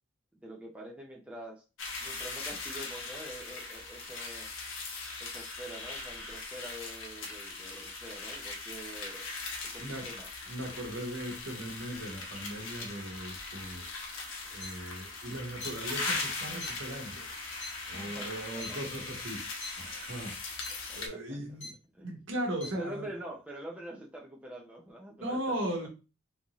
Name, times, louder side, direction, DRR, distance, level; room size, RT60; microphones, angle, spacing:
voice 1, 0.4-1.6 2.0-4.5 5.2-9.3 9.7-10.3 17.9-18.8 20.7-21.2 21.9-22.2 22.7-25.5, right 1 dB, 5° right, 0.5 m, -45 dB
sound 1, 1.8-21.1, left 3 dB, 75° left, 0.9 m, -40 dB
voice 2, 9.8-10.1 10.5-13.9 14.5-19.5 19.8-20.7 20.9-21.7 22.0-23.1 25.2-25.9, right 1 dB, 65° right, 1.2 m, -38 dB
sound 2, 14.6-14.7 15.6-15.7 16.6-16.7 17.6-17.7 18.6-18.7 19.6-19.7 20.6-20.7 21.6-21.7 22.6-22.7, left 2 dB, 30° left, 1.4 m, -40 dB
3.7 x 2.6 x 3.0 m
head